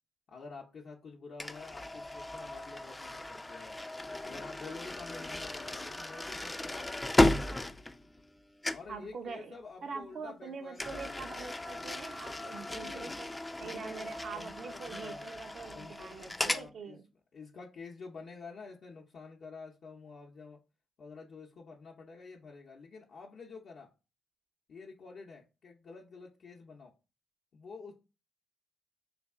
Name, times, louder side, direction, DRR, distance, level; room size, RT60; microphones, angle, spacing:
voice 1, 0.3-3.8 4.2-6.9 8.7-11.5 12.7-13.2 13.6-15.3 15.7-17.0 17.3-20.6 21.0-23.9 24.7-26.9 27.5-27.9, left 4 dB, 65° left, -2 dB, 0.6 m, -49 dB
sound 1, 1.4-8.4 8.6-9.0 10.8-16.7, left 1 dB, 15° left, 0.4 m, -35 dB
voice 2, 8.9-9.5 9.8-13.3 13.6-17.0, right 5 dB, 60° right, 7 dB, 0.6 m, -44 dB
3.3 x 2.3 x 3.4 m, 0.29 s
supercardioid pair, 60°, 0 cm